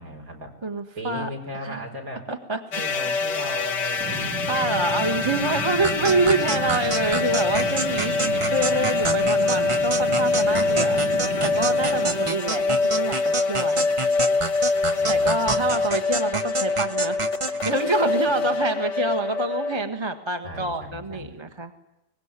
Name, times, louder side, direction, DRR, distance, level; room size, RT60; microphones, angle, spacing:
voice 1, 0.0-0.6 1.0-2.3 2.7-4.3 4.8-5.1 5.6-6.1 7.9-8.5 9.9-11.2 11.9-12.2 12.5-13.0 15.0-15.9 20.4-21.4, equal, 50° right, 2 dB, 5.2 m, -38 dB
voice 2, 0.6-1.3 1.6-1.8 2.3-2.6 3.0-3.2 4.2-11.0 11.4-13.9 15.1-21.7, right 2 dB, 15° right, 7 dB, 1.4 m, -27 dB
sound 1, 2.7-19.8, left 4 dB, 45° left, 1.2 m, -25 dB
sound 2, 4.0-12.3, right 3 dB, 75° right, 3.4 m, -34 dB
sound 3, 5.8-17.8, right 3 dB, 35° right, 0.5 m, -29 dB
23.5 x 20.0 x 9.8 m, 0.94 s
omnidirectional pair, 1.9 m